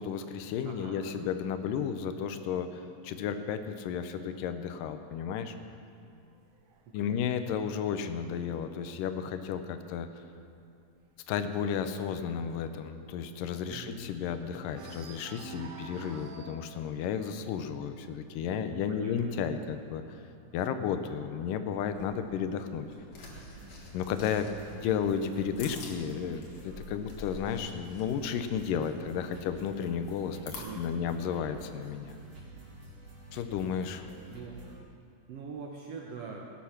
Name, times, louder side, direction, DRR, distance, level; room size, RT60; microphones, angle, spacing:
voice 1, 0.0-5.6 6.9-10.1 11.3-20.0 20.5-22.9 23.9-30.4 30.8-32.2 33.3-34.1, left 7 dB, 85° left, 9 dB, 2.3 m, -33 dB
voice 2, 0.6-1.1 6.9-7.2 13.7-14.0 18.5-19.1 25.3-25.6 30.6-31.2 34.3-34.6 35.3-36.5, right 5 dB, 70° right, 0 dB, 1.5 m, -43 dB
sound 1, 5.9-9.5 9.9-10.3 10.5-10.6 11.0-14.3 14.7-21.2 22.1-23.1, right 5 dB, 85° right, 1.2 m, -52 dB
sound 2, 21.9-30.6, left 3 dB, 60° left, 2.8 m, -49 dB
sound 3, 23.2-34.8, right 2 dB, 50° right, 3.5 m, -50 dB
17.0 x 8.5 x 5.8 m, 2.5 s
omnidirectional pair, 3.8 m